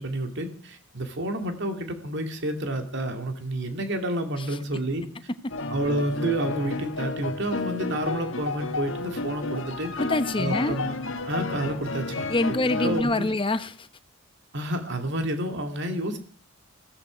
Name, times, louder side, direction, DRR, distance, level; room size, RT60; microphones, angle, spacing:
voice 1, 0.0-5.0 5.7-9.9 10.4-11.0 11.3-12.3 12.8-13.3 14.5-16.2, right 1 dB, 55° right, 6 dB, 2.4 m, -29 dB
sound 1, 5.5-13.0, left 3 dB, 60° left, 1.5 m, -31 dB
voice 2, 10.0-10.8 12.3-13.9, left 2 dB, 25° left, 12 dB, 0.9 m, -26 dB
15.5 x 14.5 x 5.1 m, 0.42 s
head